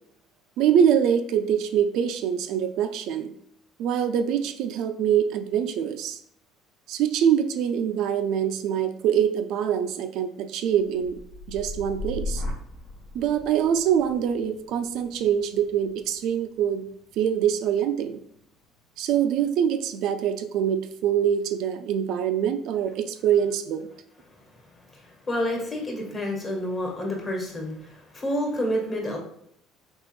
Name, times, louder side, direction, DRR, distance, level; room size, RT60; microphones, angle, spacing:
voice 1, 0.6-3.3 3.8-6.2 6.9-11.2 11.5-12.4 13.1-16.9 17.2-18.2 19.0-23.9, right 9 dB, 70° right, 8 dB, 0.3 m, -24 dB
sound 1, 10.7-18.8 19.2-19.7, left 2 dB, 80° left, 1.4 m, -39 dB
voice 2, 24.9-29.2, equal, 30° left, 0 dB, 1.3 m, -29 dB
3.4 x 2.9 x 3.1 m, 0.69 s
supercardioid pair, 90°, 0 cm